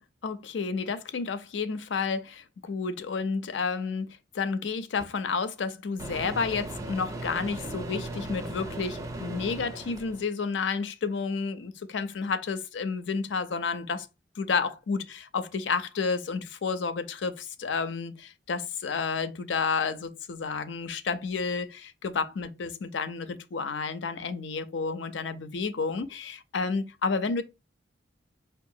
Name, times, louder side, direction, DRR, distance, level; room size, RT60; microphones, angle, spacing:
voice 1, 0.2-4.1 4.3-14.1 14.4-27.4, left 5 dB, 85° left, 0.5 m, -31 dB
Microwave oven, 5.0-5.1 6.0-10.3, right 2 dB, 20° right, 0.4 m, -37 dB
4.6 x 2.4 x 2.7 m
head